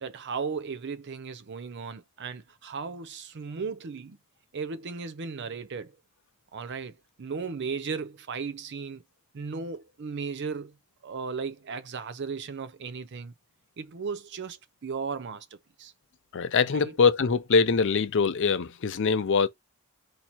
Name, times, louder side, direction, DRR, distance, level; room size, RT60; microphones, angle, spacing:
voice 1, 0.0-4.2 4.5-5.9 6.5-9.0 9.3-10.8 11.0-13.3 13.8-15.9 16.7-16.9, right 5 dB, 50° right, 0.5 m, -36 dB
voice 2, 16.3-19.5, left 5 dB, 55° left, 0.5 m, -23 dB
4.3 x 2.8 x 4.4 m
head